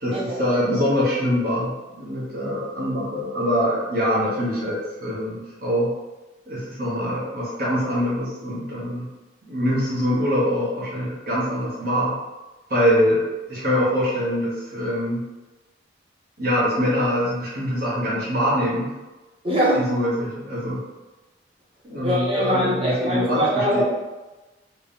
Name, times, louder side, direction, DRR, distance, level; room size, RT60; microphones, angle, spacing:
voice 1, 0.0-5.9 6.5-9.1 9.4-12.1 12.7-15.2 16.4-18.9 19.7-20.8 21.8-23.8, equal, 55° right, -7 dB, 1.3 m, -24 dB
voice 2, 19.4-19.8 22.0-23.8, equal, 30° right, -6 dB, 1.2 m, -22 dB
3.3 x 2.7 x 3.6 m, 1.1 s
head